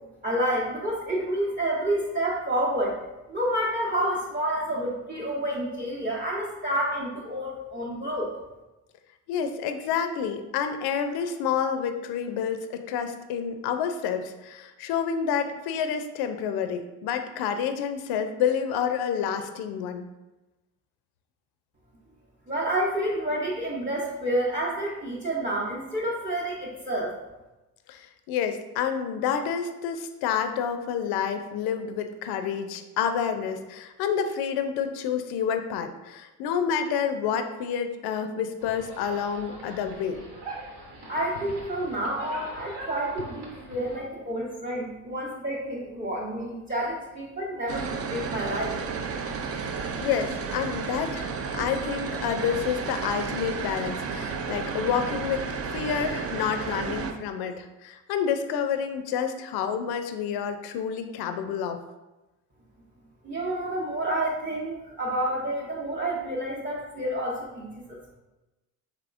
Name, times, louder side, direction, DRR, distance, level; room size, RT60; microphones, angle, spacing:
voice 1, 0.2-3.0 3.3-8.3 22.5-27.2 41.1-49.0 63.2-68.2, right 1 dB, 20° right, -5 dB, 0.8 m, -29 dB
voice 2, 9.3-20.1 27.9-40.2 50.0-55.4 55.7-61.8, left 7 dB, 70° left, 8 dB, 0.5 m, -29 dB
sound 1, 38.6-44.0, right 1 dB, 70° right, 1.1 m, -41 dB
sound 2, 47.7-57.1, right 5 dB, 40° right, 0.4 m, -32 dB
3.4 x 3.1 x 2.5 m, 1.0 s
supercardioid pair, 60°, 40 cm